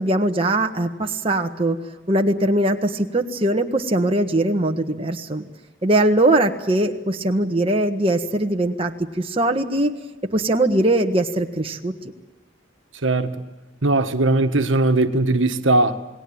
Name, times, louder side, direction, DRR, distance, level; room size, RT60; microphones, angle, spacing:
voice 1, 0.0-1.8 2.1-5.5 5.8-9.9 10.3-11.9, right 1 dB, 30° right, 1.5 m, -21 dB
voice 2, 13.8-16.0, right 2 dB, 75° right, 1.6 m, -19 dB
29.0 x 20.0 x 8.8 m
head